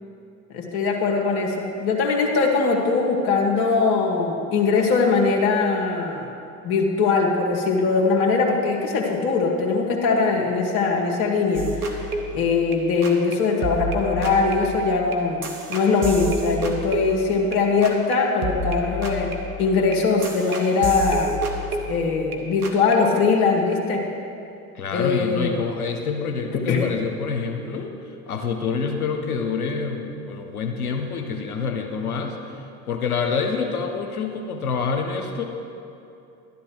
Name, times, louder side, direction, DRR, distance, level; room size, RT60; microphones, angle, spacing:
voice 1, 0.5-6.3 6.6-15.4 15.7-21.4 21.9-24.1 24.9-25.7 26.5-26.9, left 4 dB, 60° left, 0 dB, 1.7 m, -21 dB
sound 1, 11.5-13.3 13.6-18.1 18.4-22.4 22.6-22.9, equal, 80° right, 1.3 m, -30 dB
voice 2, 24.7-35.4, left 5 dB, 90° left, 4 dB, 1.1 m, -27 dB
12.0 x 11.0 x 4.6 m, 2.7 s
hypercardioid pair, 65°, 43 cm